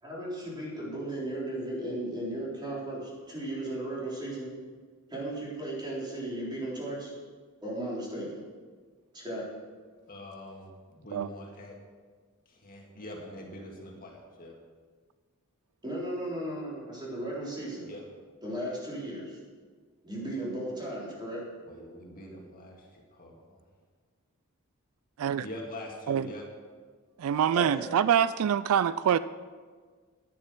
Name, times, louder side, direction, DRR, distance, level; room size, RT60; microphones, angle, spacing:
voice 1, 0.0-4.5 5.1-7.1 7.6-8.4 9.1-9.5 15.8-17.9 18.4-19.4 20.0-21.4 27.5-27.9, right 1 dB, 20° right, -5 dB, 3.8 m, -35 dB
voice 2, 10.1-11.8 12.5-14.6 17.8-18.1 21.7-23.5 25.4-26.5, equal, 40° left, -1 dB, 2.1 m, -44 dB
voice 3, 27.2-29.2, right 8 dB, 70° right, 16 dB, 0.3 m, -25 dB
11.0 x 9.9 x 6.1 m, 1.5 s
head